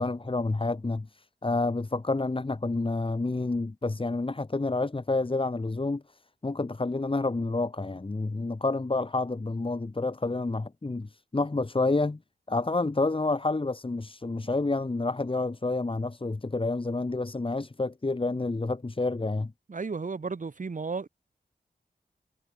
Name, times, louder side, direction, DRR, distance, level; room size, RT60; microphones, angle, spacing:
voice 1, 0.0-6.0 6.4-12.2 12.5-19.5, left 3 dB, 30° left, 2.2 m, -29 dB
voice 2, 19.7-21.1, right 4 dB, 50° right, 1.9 m, -33 dB
wide cardioid pair, 80°, 17 cm